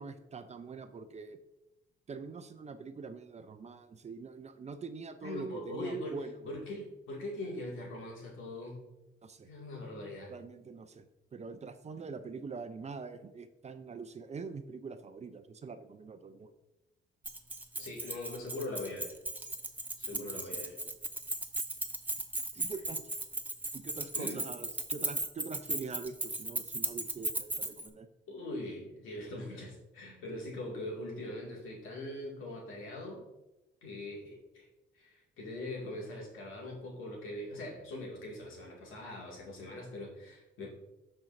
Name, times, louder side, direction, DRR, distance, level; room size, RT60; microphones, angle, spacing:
voice 1, 0.0-1.4 2.1-6.4 9.2-9.5 10.3-11.0 11.3-16.5 20.1-20.6 22.5-23.0 23.7-28.1, right 4 dB, 35° right, 10 dB, 0.5 m, -44 dB
voice 2, 5.2-8.9 9.4-10.3 17.8-19.1 20.0-20.8 24.1-24.4 28.3-33.3 33.8-34.7 34.9-40.7, left 1 dB, 85° left, -2 dB, 2.2 m, -41 dB
Keys jangling, 17.2-27.9, right 1 dB, 10° right, 0.8 m, -36 dB
12.5 x 4.4 x 2.6 m, 0.98 s
cardioid pair, 90°, 20 cm